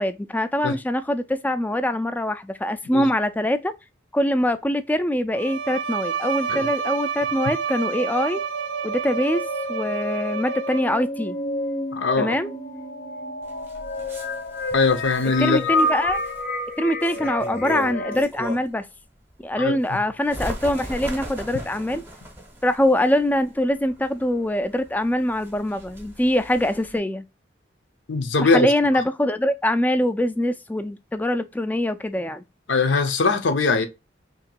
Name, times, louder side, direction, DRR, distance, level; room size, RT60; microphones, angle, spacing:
voice 1, 0.0-3.7 4.1-8.4 8.8-9.4 9.7-11.4 12.2-12.5 15.4-16.2 16.8-18.8 19.4-22.0 22.6-27.2 28.4-32.4, left 1 dB, 10° left, 0.3 m, -23 dB
Bowed string instrument, 5.3-11.2, right 6 dB, 80° right, 0.4 m, -29 dB
sound 1, 8.6-18.2, left 2 dB, 50° left, 0.6 m, -29 dB
voice 2, 11.9-12.3 14.7-15.6 19.6-19.8 28.1-28.7 32.7-33.9, left 4 dB, 90° left, 0.7 m, -21 dB
Bird, 13.4-18.9 19.3-27.0, equal, 15° right, 0.7 m, -38 dB
3.0 x 2.8 x 4.3 m
head